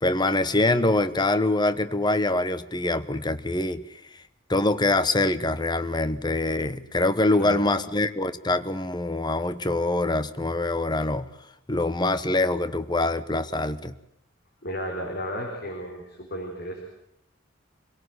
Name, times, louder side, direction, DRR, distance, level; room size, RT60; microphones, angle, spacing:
voice 1, 0.0-3.8 4.5-11.3 11.7-13.9, left 2 dB, 25° left, 12 dB, 1.0 m, -24 dB
voice 2, 14.6-16.8, equal, 55° left, 2 dB, 4.3 m, -33 dB
26.5 x 18.0 x 9.6 m, 0.78 s
head